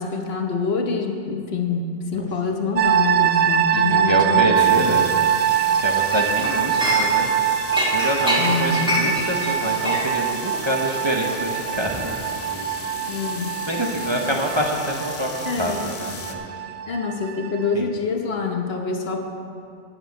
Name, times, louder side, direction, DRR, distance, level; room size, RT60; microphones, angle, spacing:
voice 1, 0.0-5.0 8.4-8.8 13.1-13.5 15.4-15.8 16.9-19.3, left 4 dB, 60° left, 3 dB, 1.2 m, -26 dB
sound 1, 2.8-17.7, right 9 dB, 65° right, 0.7 m, -23 dB
voice 2, 3.7-5.1 5.8-7.3 7.9-12.7 13.7-16.6 17.7-17.8, right 1 dB, 25° right, 0 dB, 0.8 m, -26 dB
sound 2, 4.6-16.3, left 5 dB, 90° left, 1.2 m, -37 dB
Chink clink, 6.1-7.4 7.7-12.3 12.6-12.8, left 1 dB, 5° right, 1.9 m, -26 dB
8.0 x 7.9 x 8.9 m, 2.4 s
omnidirectional pair, 1.2 m